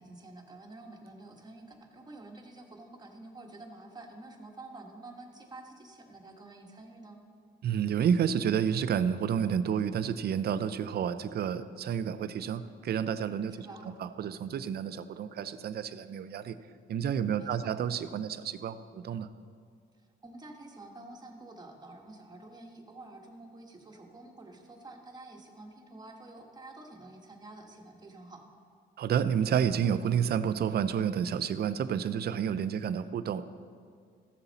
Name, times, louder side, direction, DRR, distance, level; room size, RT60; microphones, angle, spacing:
voice 1, 0.0-7.2 13.5-14.0 17.4-17.7 19.9-28.4, right 2 dB, 20° right, 1 dB, 1.5 m, -49 dB
voice 2, 7.6-13.7 14.0-16.6 16.9-19.3 29.0-33.4, right 8 dB, 55° right, 13 dB, 0.5 m, -30 dB
14.0 x 7.0 x 4.1 m, 2.1 s
cardioid pair, 90°, 20 cm